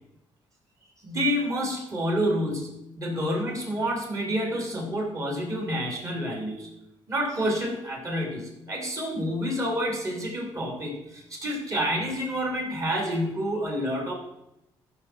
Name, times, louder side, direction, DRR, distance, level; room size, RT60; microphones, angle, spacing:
voice 1, 1.0-6.7 7.1-14.1, equal, 35° right, -1 dB, 3.4 m, -28 dB
14.5 x 6.6 x 4.5 m, 0.85 s
cardioid pair, 85°, 9 cm